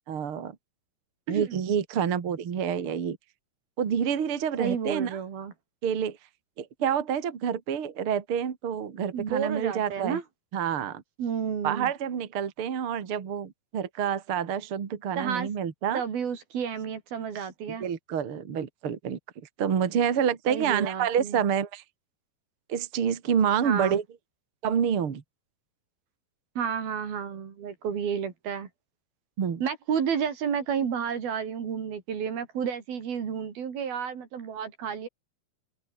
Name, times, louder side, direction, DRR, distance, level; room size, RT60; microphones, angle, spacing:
voice 1, 0.1-0.6 1.3-3.2 3.8-5.2 5.8-6.2 6.6-10.2 10.5-11.0 11.6-16.0 17.7-19.2 19.6-21.8 22.7-24.0 24.6-25.2 29.4-29.6, right 8 dB, 40° right, 2.6 m, -28 dB
voice 2, 1.3-1.6 4.6-5.5 9.1-10.2 11.2-11.9 15.2-15.5 15.9-17.9 20.5-21.4 23.6-24.0 26.6-28.7 29.6-35.1, right 7 dB, 75° right, 5.1 m, -31 dB
omnidirectional pair, 4.4 m